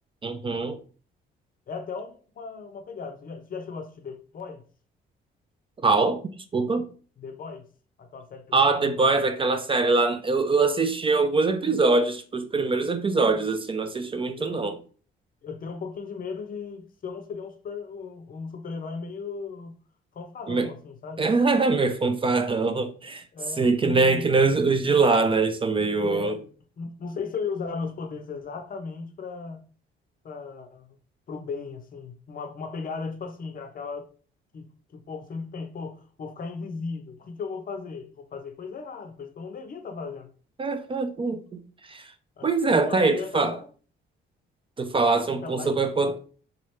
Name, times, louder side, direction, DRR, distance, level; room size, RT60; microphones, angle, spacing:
voice 1, 0.2-0.8 5.8-6.2 6.5-6.9 8.5-14.8 20.5-20.7 21.2-23.2 23.6-26.3 40.6-41.6 41.9-42.1 42.4-43.5 44.8-46.1, right 3 dB, 25° right, 0.4 m, -23 dB
voice 2, 1.7-4.6 7.2-7.7 8.0-8.9 13.3-13.4 14.3-14.7 15.4-19.8 20.1-21.3 23.3-24.3 26.0-26.5 26.8-29.7 30.2-31.0 31.3-34.1 34.5-40.3 42.4-43.7 45.2-45.8 46.0-46.2, left 5 dB, 45° left, 0.6 m, -36 dB
3.0 x 2.4 x 3.1 m
cardioid pair, 90°, 20 cm